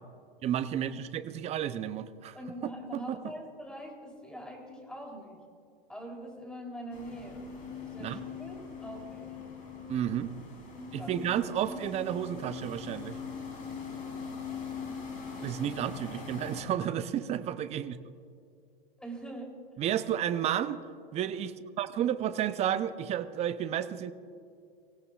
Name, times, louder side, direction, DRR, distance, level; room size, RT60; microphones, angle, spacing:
voice 1, 0.4-2.4 2.9-3.2 8.0-8.2 9.9-10.4 10.9-13.2 15.4-18.0 19.8-20.8 21.1-24.1, right 10 dB, 20° right, 13 dB, 0.6 m, -32 dB
voice 2, 2.3-5.4 5.9-7.4 7.8-9.4 11.0-11.1 15.4-15.6 19.0-19.5, equal, 5° left, 0 dB, 3.4 m, -43 dB
sound 1, 6.9-16.6, left 5 dB, 25° left, 3.9 m, -42 dB
25.0 x 16.5 x 2.4 m, 2.4 s
hypercardioid pair, 110°, 29 cm